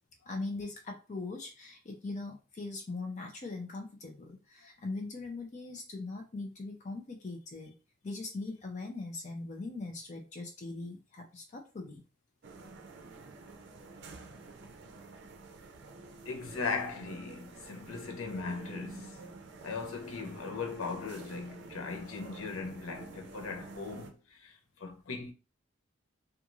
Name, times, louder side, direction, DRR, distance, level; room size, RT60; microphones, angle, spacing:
voice 1, 0.3-7.7 8.0-12.0, left 3 dB, 35° left, 0.5 m, -40 dB
sound 1, 12.4-24.1, right 3 dB, 60° right, 0.5 m, -49 dB
voice 2, 16.3-19.2 19.6-25.3, left 4 dB, 90° left, 0.6 m, -38 dB
2.5 x 2.3 x 3.0 m
head